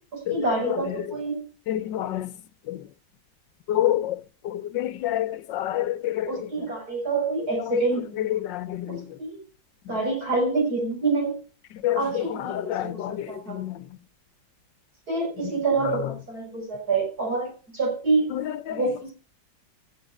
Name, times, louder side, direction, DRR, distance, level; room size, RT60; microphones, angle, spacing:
voice 1, 0.1-1.4 6.3-8.4 8.9-9.4 9.9-11.4 12.0-13.6 15.1-18.3 18.7-19.1, right 3 dB, 55° right, 6.1 m, -27 dB
voice 2, 1.7-2.3 2.7-2.8 3.7-4.2 4.4-6.3 7.7-7.8 8.3-9.0 11.8-13.8 18.7-18.8, left 12 dB, 90° left, 1.5 m, -27 dB
15.0 x 6.8 x 5.4 m
omnidirectional pair, 1.9 m